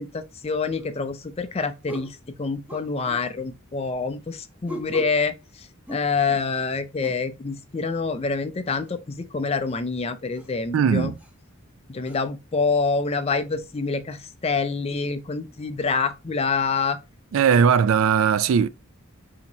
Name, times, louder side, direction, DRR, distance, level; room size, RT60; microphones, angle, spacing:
voice 1, 0.0-11.1 11.9-17.0, left 4 dB, 30° left, 0.4 m, -26 dB
sound 1, 0.8-0.9 1.9-2.2 2.7-3.3 4.7-5.2 5.9-6.5 7.0-7.3 8.9-9.0 9.7-9.8 10.3-10.5 11.2-11.3 12.0-12.2, equal, 5° right, 1.1 m, -39 dB
voice 2, 10.7-11.1 17.3-18.7, right 7 dB, 70° right, 0.3 m, -19 dB
4.4 x 2.8 x 3.9 m
head